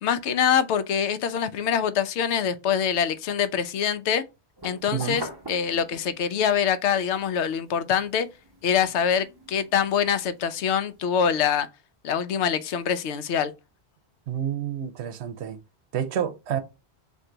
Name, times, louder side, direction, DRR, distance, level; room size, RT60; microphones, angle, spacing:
voice 1, 0.0-4.2 4.6-8.3 8.6-11.7 12.0-13.5, left 8 dB, 80° left, 0.8 m, -24 dB
sound 1, 4.6-6.4 6.9-11.5, right 1 dB, 25° right, 0.7 m, -44 dB
voice 2, 4.9-5.2 14.3-15.6 15.9-16.6, right 9 dB, 80° right, 0.9 m, -29 dB
3.8 x 2.6 x 4.4 m
omnidirectional pair, 1.1 m